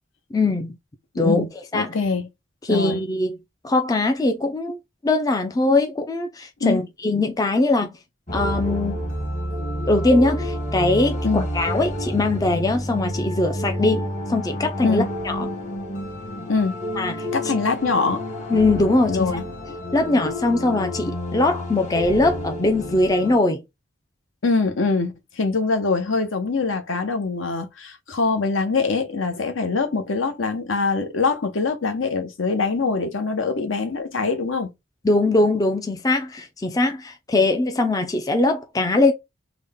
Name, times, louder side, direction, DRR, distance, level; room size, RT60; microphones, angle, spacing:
voice 1, 0.3-0.8 1.2-1.4 1.7-1.9 2.6-3.4 3.6-4.8 5.0-7.9 8.3-9.0 9.9-15.5 17.0-17.3 18.5-19.3 19.9-23.6 35.0-39.1, left 2 dB, 15° left, 0.4 m, -21 dB
voice 2, 1.7-2.3 2.7-3.0 6.6-6.8 11.2-11.5 14.8-15.1 16.5-16.7 17.3-18.3 19.1-19.4 24.4-34.7, left 4 dB, 70° left, 0.9 m, -23 dB
sound 1, 8.3-23.4, equal, 35° left, 1.2 m, -29 dB
3.8 x 2.1 x 3.5 m
head